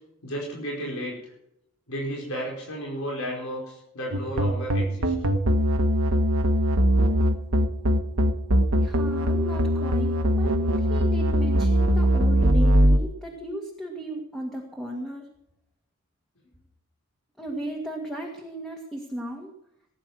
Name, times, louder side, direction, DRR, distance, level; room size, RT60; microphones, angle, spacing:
voice 1, 0.2-1.3 1.9-5.1, equal, 85° left, -2 dB, 4.7 m, -33 dB
sound 1, 4.1-13.0, equal, 80° right, 1.5 m, -21 dB
voice 2, 8.8-15.3 17.4-19.5, right 1 dB, ahead, 0 dB, 1.8 m, -36 dB
18.0 x 9.8 x 6.3 m, 0.79 s
head